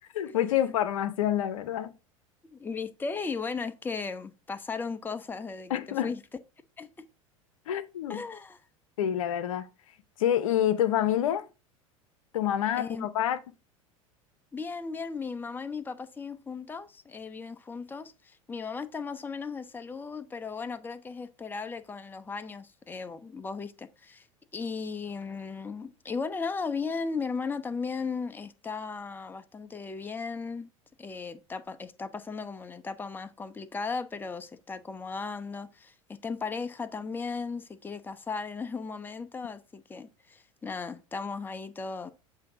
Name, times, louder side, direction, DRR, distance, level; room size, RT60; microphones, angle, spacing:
voice 1, 0.1-1.9 5.7-6.1 7.7-8.2 9.0-9.7 10.2-11.4 12.3-13.4, left 11 dB, 70° left, 0.7 m, -27 dB
voice 2, 2.4-6.2 6.8-6.9 8.1-8.6 12.8-13.1 14.5-24.3 24.5-30.7 31.0-35.9 36.2-42.1, left 4 dB, 10° left, 0.6 m, -36 dB
7.6 x 2.7 x 4.7 m
hypercardioid pair, 80°, 18 cm